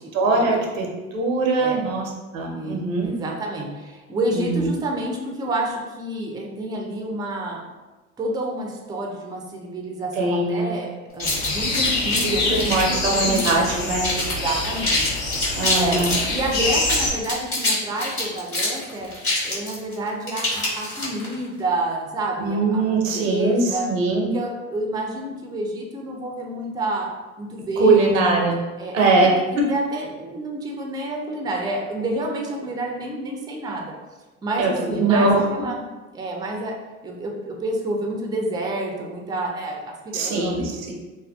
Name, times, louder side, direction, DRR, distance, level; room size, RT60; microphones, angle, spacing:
voice 1, 0.1-3.1 4.3-4.7 10.2-10.7 12.2-14.0 15.6-16.2 22.4-24.4 27.8-28.6 28.9-29.3 34.6-35.5 40.1-40.9, right 3 dB, 85° right, 0 dB, 0.6 m, -21 dB
voice 2, 2.5-7.6 8.2-12.5 12.9-15.0 15.7-19.1 19.4-23.9 24.3-27.1 27.4-28.1 28.8-29.0 29.2-33.9 34.4-35.9 36.1-36.7 37.0-40.9, right 1 dB, 10° right, 1 dB, 0.4 m, -29 dB
sound 1, 11.2-17.1, left 3 dB, 55° left, 0.8 m, -26 dB
sound 2, 11.2-13.7 14.0-14.4 14.6-16.3 16.8-21.3, left 2 dB, 30° left, 1.3 m, -25 dB
2.5 x 2.2 x 2.2 m, 1.2 s
hypercardioid pair, 65°, 38 cm